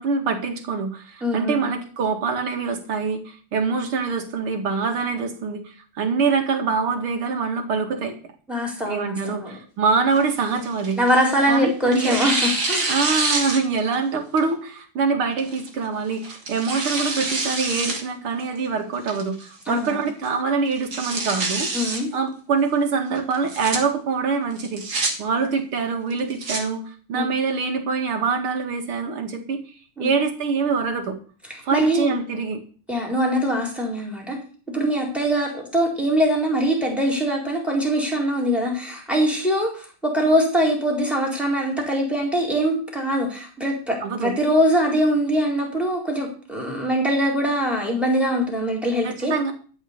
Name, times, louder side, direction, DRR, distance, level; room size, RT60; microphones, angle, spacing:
voice 1, 0.0-8.2 8.9-11.0 11.5-12.2 12.9-21.7 22.1-29.6 30.0-31.2 31.6-32.6 44.0-44.3 49.0-49.5, right 5 dB, 75° right, 4 dB, 2.8 m, -24 dB
voice 2, 1.2-1.6 8.5-9.5 11.0-12.9 19.7-20.0 21.7-22.1 27.1-27.3 30.0-30.1 31.7-32.2 32.9-34.4 34.7-49.3, equal, ahead, 0 dB, 4.2 m, -22 dB
Tearing, 10.1-11.4 11.9-14.0 14.4-14.5 15.4-15.7 16.2-18.0 18.4-18.5 19.1-19.5 19.8-19.9 20.2-20.3 20.7-22.0 23.3-23.8 24.6-25.1 26.1-26.6, right 3 dB, 45° right, 3.0 m, -26 dB
13.5 x 5.7 x 8.2 m, 0.41 s
omnidirectional pair, 2.4 m